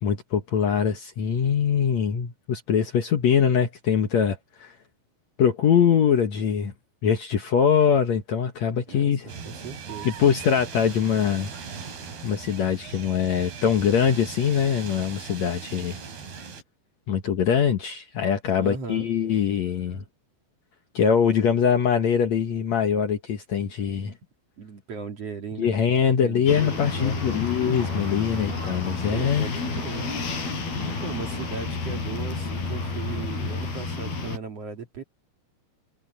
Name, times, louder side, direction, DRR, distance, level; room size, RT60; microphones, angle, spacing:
voice 1, 0.0-4.7 5.4-6.7 7.0-9.3 10.0-11.5 12.2-16.0 17.1-20.0 20.9-24.1 25.6-29.5, left 7 dB, 75° left, 1.6 m, -23 dB
voice 2, 8.9-10.1 18.6-19.1 24.6-27.4 29.1-30.1 31.0-35.0, right 5 dB, 40° right, 2.7 m, -37 dB
sound 1, 9.3-16.6, right 6 dB, 60° right, 6.1 m, -39 dB
sound 2, 26.5-34.4, left 4 dB, 55° left, 9.6 m, -30 dB
omnidirectional pair, 5.3 m